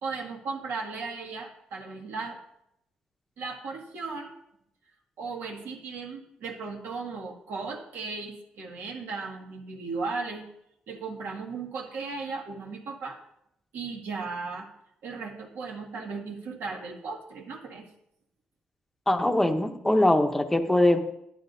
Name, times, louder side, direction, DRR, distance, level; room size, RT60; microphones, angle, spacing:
voice 1, 0.0-2.4 3.4-4.3 5.2-10.4 10.9-13.2 13.7-14.7 15.0-17.9, right 4 dB, 80° right, 0 dB, 1.9 m, -36 dB
voice 2, 19.1-21.0, left 1 dB, 10° left, 5 dB, 0.8 m, -22 dB
11.5 x 11.0 x 2.7 m, 0.77 s
wide cardioid pair, 155°, 3 cm